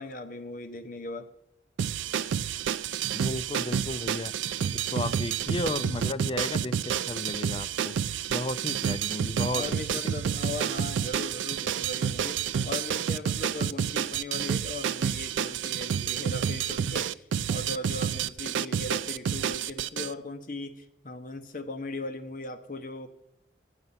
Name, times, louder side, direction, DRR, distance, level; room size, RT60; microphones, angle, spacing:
voice 1, 0.0-1.3 9.5-23.1, left 2 dB, 45° left, 7 dB, 0.8 m, -38 dB
sound 1, 1.8-20.1, right 8 dB, 90° right, 0.3 m, -29 dB
voice 2, 3.1-4.3 4.7-6.7 7.0-7.9 8.3-9.7 9.9-10.0, left 2 dB, 30° left, 12 dB, 0.4 m, -33 dB
12.0 x 7.9 x 5.7 m, 0.82 s
head